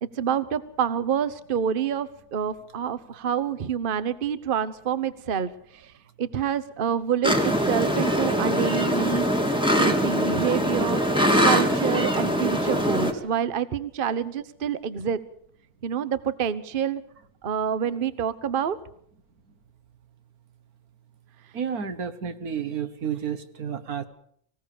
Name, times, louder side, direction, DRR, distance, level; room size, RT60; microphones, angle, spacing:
voice 1, 0.0-5.9 6.2-9.3 9.7-11.0 11.4-15.2 15.8-17.0 17.4-18.8, right 8 dB, 40° right, 15 dB, 1.1 m, -27 dB
sound 1, 7.2-13.1, equal, 5° right, 2.2 m, -22 dB
voice 2, 21.5-24.0, right 7 dB, 85° right, 11 dB, 1.8 m, -31 dB
24.5 x 16.5 x 7.0 m, 0.68 s
omnidirectional pair, 1.5 m